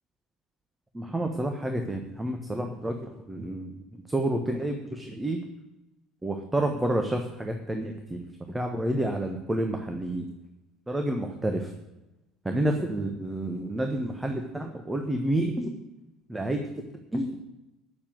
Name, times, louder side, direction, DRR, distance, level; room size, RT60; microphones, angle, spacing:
voice 1, 0.9-5.4 6.2-8.2 8.5-10.3 10.9-11.7 12.4-15.7 16.3-16.6 17.1-17.4, right 1 dB, 10° right, 4 dB, 1.3 m, -29 dB
9.9 x 7.3 x 9.4 m, 0.99 s
figure-of-eight pair, 60°, 0 cm